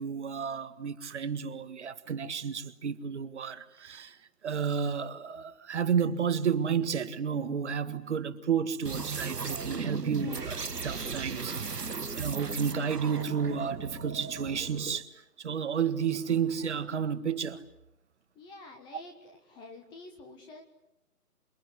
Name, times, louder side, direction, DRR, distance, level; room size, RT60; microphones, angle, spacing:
voice 1, 0.0-4.2 4.4-15.1 15.4-17.6, right 7 dB, 45° right, 1.8 m, -31 dB
sound 1, 8.8-15.0, right 4 dB, 90° right, 1.6 m, -36 dB
voice 2, 18.3-20.6, left 2 dB, 10° left, 1.4 m, -48 dB
28.0 x 22.0 x 9.6 m
figure-of-eight pair, 145°, 46 cm